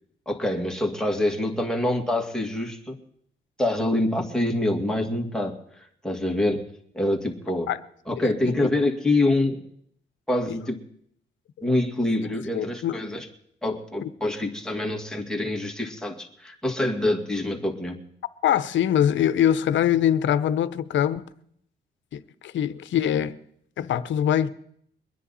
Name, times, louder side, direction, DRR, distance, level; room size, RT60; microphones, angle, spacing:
voice 1, 0.3-3.0 3.6-6.6 6.9-7.7 8.1-9.6 10.3-10.8 11.6-13.3 13.6-18.0, left 1 dB, 5° left, 2.4 m, -26 dB
voice 2, 8.2-8.5 12.5-13.0 14.0-14.1 18.4-21.2 22.1-23.4 23.8-24.5, left 10 dB, 70° left, 0.8 m, -23 dB
23.5 x 10.0 x 4.2 m
cardioid pair, 90°, 20 cm